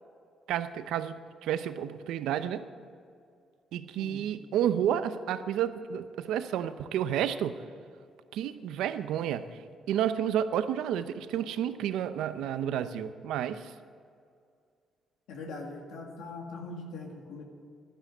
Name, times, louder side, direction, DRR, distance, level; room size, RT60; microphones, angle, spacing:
voice 1, 0.5-2.6 3.7-7.6 8.3-9.4 9.9-13.7, right 10 dB, 85° right, 12 dB, 0.6 m, -30 dB
voice 2, 15.3-17.4, left 3 dB, 90° left, 1 dB, 1.9 m, -41 dB
11.5 x 10.0 x 8.3 m, 2.3 s
cardioid pair, 90°, 0 cm